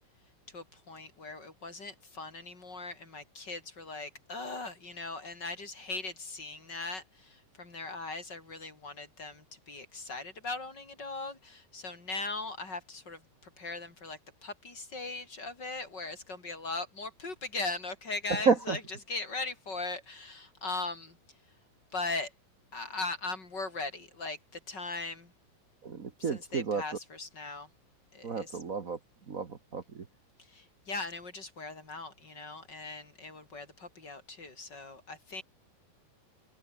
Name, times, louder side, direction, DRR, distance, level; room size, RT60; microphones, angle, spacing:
voice 1, 0.5-18.8 19.1-21.2 21.9-22.3 22.7-25.3 26.2-27.7 28.1-28.6 30.4-35.4, left 3 dB, 30° left, 4.5 m, -39 dB
voice 2, 18.3-18.8 25.8-26.8 28.2-29.0 29.3-30.1, right 5 dB, 55° right, 0.9 m, -30 dB
omnidirectional pair, 4.0 m